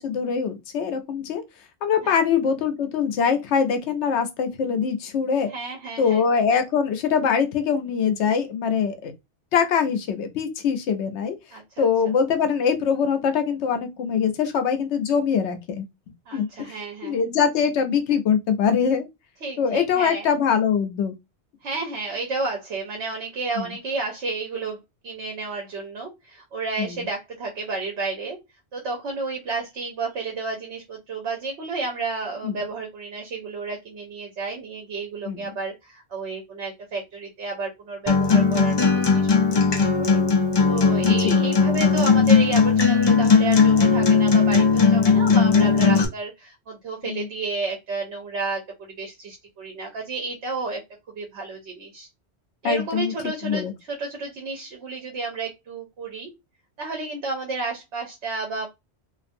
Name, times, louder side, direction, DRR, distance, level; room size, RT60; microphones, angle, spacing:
voice 1, 0.0-1.4 1.8-5.5 6.0-9.1 9.5-11.4 11.8-15.8 16.3-16.5 17.0-19.1 19.6-21.1 23.6-23.7 26.8-26.9 32.4-32.6 35.3-35.4 41.0-41.4 45.0-45.2 47.0-47.3 52.6-53.1 53.4-53.7, left 6 dB, 85° left, 0.9 m, -23 dB
voice 2, 5.5-6.3 11.5-12.1 16.3-17.2 19.4-20.3 21.6-28.4 28.7-40.2 40.7-50.8 51.1-52.1 52.6-56.3 56.8-58.7, right 3 dB, 80° right, 1.0 m, -31 dB
Acoustic guitar, 38.1-46.1, left 5 dB, 45° left, 0.3 m, -18 dB
2.5 x 2.5 x 2.5 m
omnidirectional pair, 1.1 m